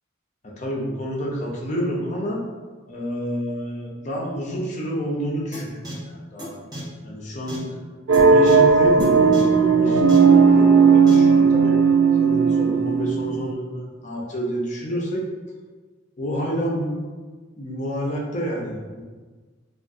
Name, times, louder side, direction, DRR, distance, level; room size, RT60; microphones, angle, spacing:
voice 1, 0.6-2.4 2.9-6.6 7.0-7.7 8.1-11.8 12.2-15.2 16.2-17.0 17.6-19.0, equal, 35° left, -3 dB, 0.6 m, -28 dB
sound 1, 5.5-5.6 5.8-5.9 6.4-6.5 6.7-6.8 7.5-7.6 8.1-8.2 8.5-8.6 9.0-9.1 9.3-9.4 10.1-10.2 11.1-11.2, right 1 dB, 20° right, 0.7 m, -34 dB
sound 2, 8.1-13.5, right 5 dB, 85° right, 0.4 m, -16 dB
3.4 x 2.4 x 2.6 m, 1.4 s
head